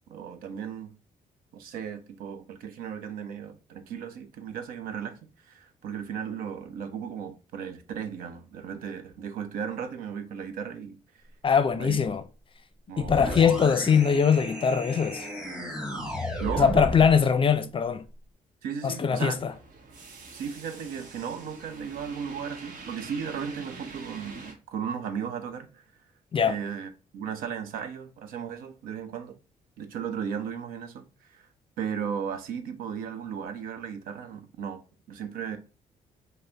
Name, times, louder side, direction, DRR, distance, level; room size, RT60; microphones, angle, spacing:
voice 1, 0.1-0.9 1.5-11.2 11.7-12.0 12.9-13.4 16.4-16.9 18.6-19.4 20.3-25.8 26.4-29.4 29.8-31.5 31.8-34.8 35.1-35.6, right 7 dB, 90° right, 0.7 m, -36 dB
voice 2, 11.4-12.2 13.0-15.3 16.6-18.0 18.8-19.5 26.3-26.6, left 6 dB, 40° left, 0.5 m, -22 dB
sound 1, 13.0-17.2, equal, 5° right, 1.1 m, -34 dB
sound 2, 19.2-24.5, right 3 dB, 70° right, 1.0 m, -45 dB
5.4 x 2.0 x 3.8 m
cardioid pair, 80°, 14 cm